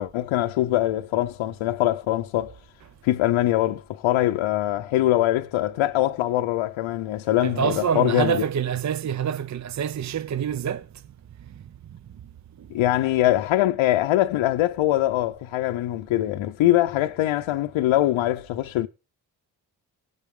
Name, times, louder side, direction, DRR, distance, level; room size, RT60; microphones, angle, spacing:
voice 1, 0.0-2.5 3.0-8.4 12.7-18.9, left 14 dB, 85° left, 0.7 m, -23 dB
voice 2, 7.4-10.9 12.6-12.7, right 8 dB, 40° right, 0.6 m, -26 dB
17.5 x 7.3 x 3.7 m
supercardioid pair, 45°, 47 cm